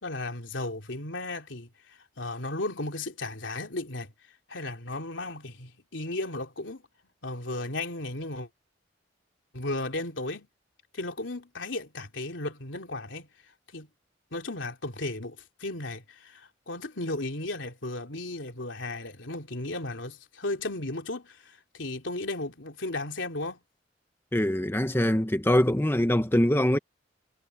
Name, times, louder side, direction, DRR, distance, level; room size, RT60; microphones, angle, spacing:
voice 1, 0.0-1.7 2.2-4.1 4.5-6.8 7.2-8.5 9.5-10.5 10.9-13.3 13.7-13.9 14.3-23.6, left 2 dB, 80° left, 3.1 m, -35 dB
voice 2, 24.3-26.8, left 1 dB, 10° left, 1.0 m, -23 dB
head